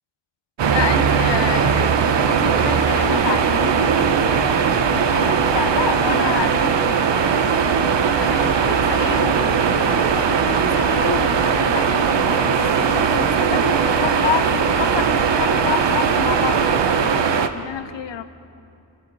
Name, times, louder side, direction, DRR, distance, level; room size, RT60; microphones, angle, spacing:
sound 1, 0.6-17.5, right 6 dB, 75° right, 1.1 m, -19 dB
voice 1, 0.7-18.2, left 9 dB, 85° left, 10 dB, 1.1 m, -29 dB
26.0 x 25.0 x 4.2 m, 2.6 s
wide cardioid pair, 110°, 43 cm